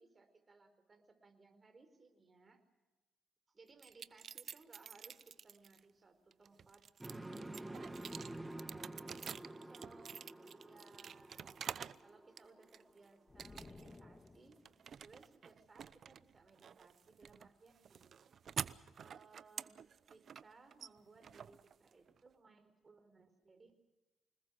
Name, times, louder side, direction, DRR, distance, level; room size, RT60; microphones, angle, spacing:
voice 1, 0.0-2.6 3.5-7.6 8.6-11.5 12.0-14.6 15.0-18.2 19.0-23.7, right 3 dB, 30° right, 8 dB, 4.2 m, -63 dB
sound 1, 3.8-5.8 6.3-12.0 12.4-13.0 13.4-14.0 14.3-22.2, right 7 dB, 55° right, 0.8 m, -48 dB
sound 2, 7.0-13.0, right 1 dB, 10° right, 1.6 m, -50 dB
sound 3, 13.3-14.9, left 3 dB, 25° left, 1.9 m, -56 dB
26.0 x 20.0 x 6.4 m, 1.2 s
cardioid pair, 90°, 0 cm